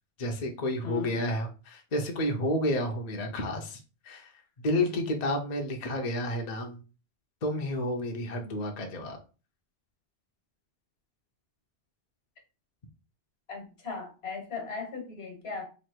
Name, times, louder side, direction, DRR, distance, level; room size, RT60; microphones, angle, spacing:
voice 1, 0.2-4.3 4.6-6.8 7.4-9.2, left 1 dB, 45° left, 3 dB, 0.7 m, -30 dB
voice 2, 0.8-1.2 13.5-15.7, left 5 dB, 80° left, 3 dB, 1.4 m, -37 dB
3.2 x 2.7 x 4.4 m, 0.34 s
omnidirectional pair, 1.1 m